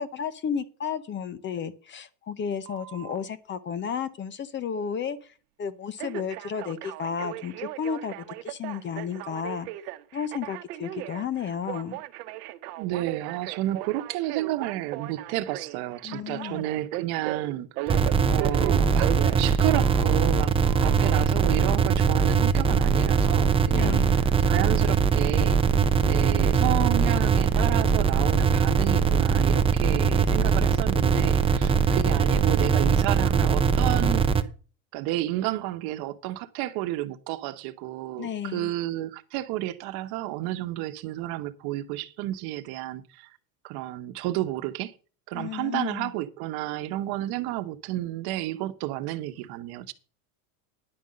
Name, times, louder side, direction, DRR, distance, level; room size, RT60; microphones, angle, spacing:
voice 1, 0.0-5.2 5.6-9.7 10.1-12.0 16.0-16.6 23.7-24.2 38.2-38.7 45.3-46.1, left 7 dB, 25° left, 0.8 m, -32 dB
Telephone, 2.7-3.2 6.0-20.2 20.7-21.2, right 14 dB, 80° right, 1.0 m, -37 dB
voice 2, 12.8-18.0 18.3-20.6 20.8-25.6 26.0-34.3 34.9-43.3 43.6-44.9 45.3-49.9, right 15 dB, 55° right, 1.2 m, -31 dB
sound 1, 17.9-34.4, right 5 dB, 15° right, 0.5 m, -21 dB
10.5 x 5.3 x 7.5 m
supercardioid pair, 140°, 46 cm